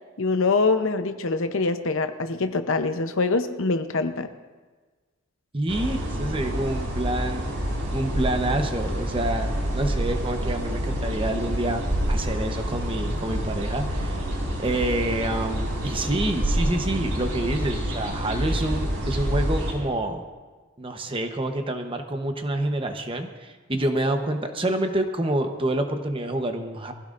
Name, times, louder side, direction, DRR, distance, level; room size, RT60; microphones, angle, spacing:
voice 1, 0.2-4.3, left 3 dB, 60° left, 9 dB, 0.8 m, -24 dB
voice 2, 5.5-7.5 7.9-14.2 14.6-20.2 20.8-26.9, right 1 dB, 25° right, 5 dB, 0.9 m, -27 dB
sound 1, 5.7-19.7, equal, 85° right, 4.9 m, -28 dB
23.0 x 16.0 x 2.6 m, 1.4 s
head